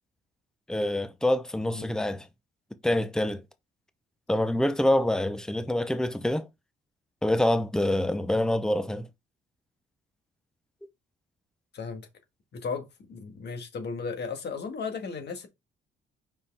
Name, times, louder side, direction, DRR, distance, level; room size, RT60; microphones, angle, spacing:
voice 1, 0.7-2.3 2.8-3.4 4.3-6.5 7.2-9.1, left 1 dB, 5° left, 0.8 m, -26 dB
voice 2, 12.5-15.5, left 5 dB, 60° left, 1.8 m, -35 dB
5.5 x 4.8 x 3.5 m
cardioid pair, 90°, 20 cm